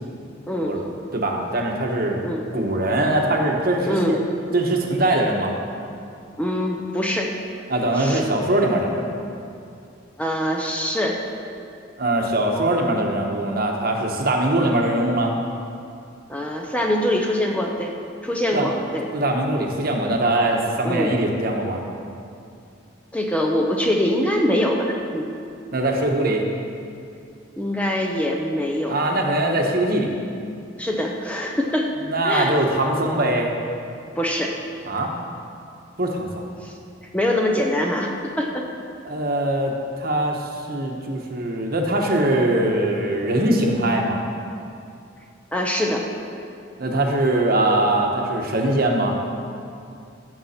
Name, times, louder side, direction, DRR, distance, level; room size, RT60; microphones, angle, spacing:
voice 1, 0.5-0.8 2.2-2.4 3.9-4.2 6.4-7.3 7.9-8.2 10.2-11.2 16.3-17.9 18.2-19.1 20.8-21.1 23.1-25.3 27.6-29.1 30.8-31.9 32.2-32.6 34.1-34.6 36.6-36.7 37.1-38.7 45.5-46.1, left 1 dB, 5° left, 0 dB, 0.8 m, -23 dB
voice 2, 1.1-2.2 2.5-4.2 4.5-5.5 7.7-9.2 12.0-15.3 18.5-18.7 19.1-21.8 25.7-26.5 28.9-30.1 32.1-33.5 34.9-35.1 36.0-36.4 39.0-44.3 46.8-49.2, right 1 dB, 50° right, 1 dB, 1.2 m, -22 dB
15.5 x 7.3 x 4.4 m, 2.5 s
head